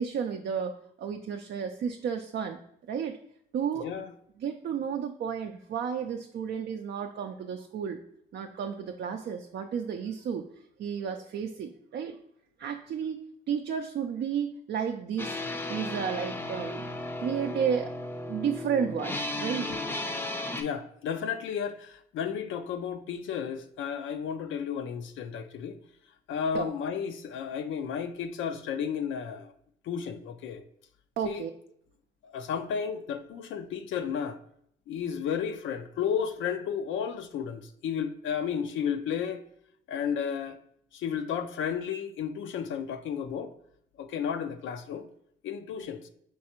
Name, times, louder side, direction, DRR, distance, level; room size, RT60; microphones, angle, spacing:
voice 1, 0.0-2.6 2.9-3.2 3.5-3.9 4.4-8.0 8.3-10.5 10.8-12.2 12.6-13.2 13.5-15.4 15.7-16.8 17.2-18.0 18.3-19.7 26.5-26.7 31.2-31.5, right 7 dB, 55° right, 0.4 m, -32 dB
voice 2, 3.7-4.1 19.7-19.8 20.6-25.8 26.3-29.5 29.8-30.6 31.2-31.4 32.2-34.4 34.9-39.4 39.9-40.6 40.9-43.5 44.0-45.1 45.4-46.1, left 7 dB, 75° left, 0.5 m, -33 dB
sound 1, 15.2-20.6, left 1 dB, 10° left, 0.4 m, -35 dB
4.6 x 3.2 x 2.9 m
cardioid pair, 90°, 20 cm